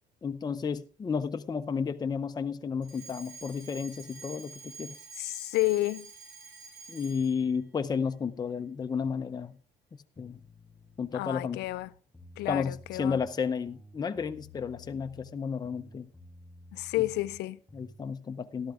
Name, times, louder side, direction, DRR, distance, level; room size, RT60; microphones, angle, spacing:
voice 1, 0.2-4.9 6.9-9.5 10.2-10.4 11.0-11.6 12.5-16.1 17.7-18.7, left 6 dB, 25° left, 0.7 m, -32 dB
Alarm, 2.8-7.5, right 4 dB, 75° right, 5.5 m, -48 dB
voice 2, 5.2-6.1 11.1-11.9 12.4-13.2 16.7-17.6, left 18 dB, 80° left, 0.5 m, -30 dB
sound 1, 10.2-11.2 11.6-13.3 13.7-15.4 15.6-18.0, left 2 dB, 5° left, 2.6 m, -53 dB
13.0 x 12.0 x 3.5 m
cardioid pair, 110°, 17 cm